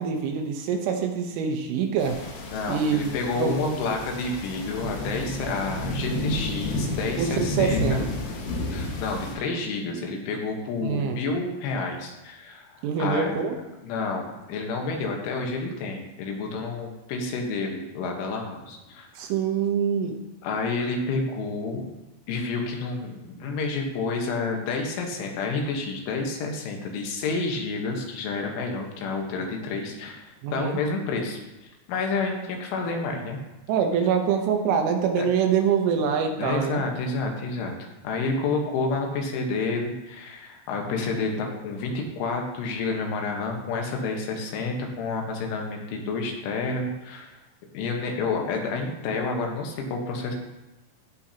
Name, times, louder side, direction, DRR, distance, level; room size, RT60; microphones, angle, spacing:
voice 1, 0.0-2.2 2.7-3.8 7.2-8.0 10.8-11.2 12.8-13.6 19.2-20.2 30.4-30.8 33.7-36.8, right 6 dB, 90° right, 3 dB, 3.6 m, -25 dB
sound 1, 2.0-9.3, left 1 dB, 65° left, 3.3 m, -31 dB
voice 2, 2.4-8.0 8.7-13.3 13.8-19.1 20.4-21.9 22.3-31.4 31.9-33.4 35.2-35.3 36.4-37.7 38.0-47.4 47.7-50.4, left 3 dB, 85° left, 1 dB, 3.8 m, -29 dB
17.5 x 6.0 x 2.9 m, 1.0 s
omnidirectional pair, 5.5 m